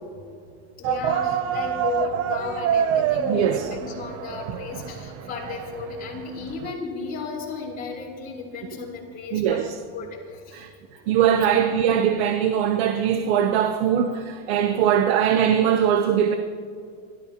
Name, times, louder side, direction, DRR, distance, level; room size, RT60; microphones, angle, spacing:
voice 1, 0.8-9.6 9.9-10.6, left 5 dB, 30° left, 4.9 m, -34 dB
sound 1, 0.8-6.7, right 8 dB, 45° right, 0.8 m, -27 dB
voice 2, 3.3-3.7 9.3-9.8 10.5-10.7 11.1-16.4, right 9 dB, 80° right, 1.0 m, -21 dB
30.0 x 13.0 x 3.0 m
supercardioid pair, 145°, 32 cm